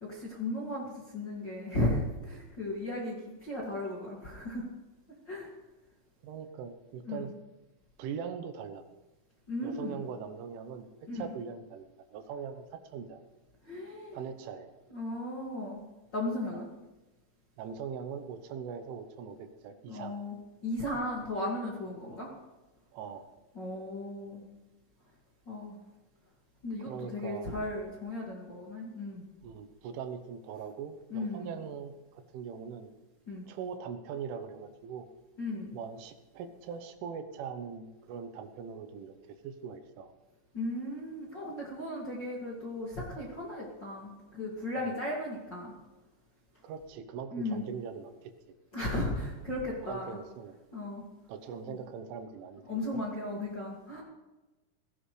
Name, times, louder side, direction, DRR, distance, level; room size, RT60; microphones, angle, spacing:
voice 1, 0.0-4.7 5.3-5.5 7.0-7.2 9.5-10.0 11.1-11.3 13.7-14.2 14.9-15.8 16.1-16.7 19.9-20.4 20.6-22.3 23.5-24.4 25.5-25.8 26.6-29.2 31.1-31.5 33.3-33.4 35.4-35.8 40.5-45.7 47.3-47.6 48.7-50.2 50.7-51.0 51.7-51.8 52.7-54.0, left 1 dB, 35° left, -4 dB, 1.7 m, -36 dB
voice 2, 6.2-7.4 8.0-8.8 9.6-12.7 12.9-13.2 14.1-14.7 16.5-16.7 17.6-20.2 22.1-22.2 22.9-23.3 26.8-27.5 29.4-32.9 33.5-35.1 35.7-40.1 44.8-45.0 46.6-48.3 49.8-50.6 51.3-53.0, right 7 dB, 80° right, 8 dB, 3.5 m, -41 dB
17.5 x 15.5 x 3.3 m, 1.1 s
omnidirectional pair, 5.5 m